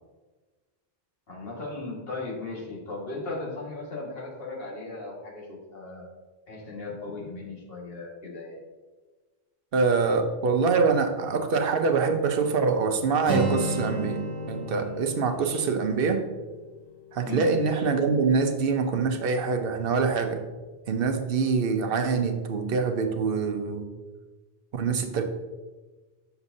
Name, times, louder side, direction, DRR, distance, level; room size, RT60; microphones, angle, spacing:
voice 1, 1.3-6.1 6.5-8.6 17.3-17.5, left 2 dB, 70° left, -4 dB, 1.9 m, -37 dB
voice 2, 9.7-16.2 17.1-20.4 20.9-23.9 24.7-25.2, right 4 dB, 65° right, 6 dB, 0.9 m, -25 dB
Acoustic guitar, 13.2-17.2, equal, 40° left, 2.0 m, -33 dB
7.0 x 6.8 x 2.6 m, 1.3 s
omnidirectional pair, 1.0 m